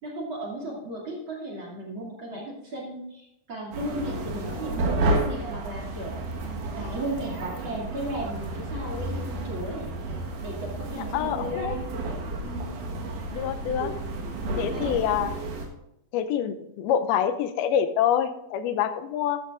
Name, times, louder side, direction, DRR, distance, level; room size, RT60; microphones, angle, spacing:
voice 1, 0.0-6.2 6.8-9.9 10.4-11.9 12.4-12.7 14.5-15.0, right 1 dB, 35° right, -4 dB, 3.0 m, -35 dB
sound 1, 3.7-15.7, right 2 dB, 60° right, 2.6 m, -31 dB
voice 2, 11.1-11.7 13.3-13.9 14.6-15.3 16.1-19.4, left 9 dB, 90° left, 10 dB, 2.6 m, -26 dB
13.5 x 12.5 x 2.5 m, 0.83 s
omnidirectional pair, 4.4 m